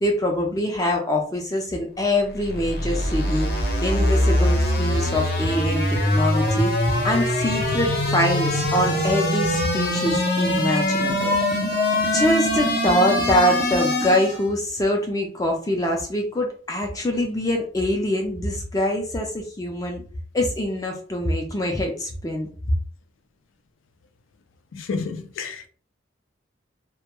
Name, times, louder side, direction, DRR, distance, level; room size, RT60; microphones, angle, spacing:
voice 1, 0.0-6.7 7.0-11.4 12.1-20.0 20.3-22.5, left 1 dB, 20° left, 0.4 m, -24 dB
sound 1, 2.3-14.5, left 1 dB, 50° left, 0.7 m, -22 dB
voice 2, 24.7-25.7, left 4 dB, 90° left, 0.4 m, -30 dB
2.1 x 2.1 x 3.0 m
head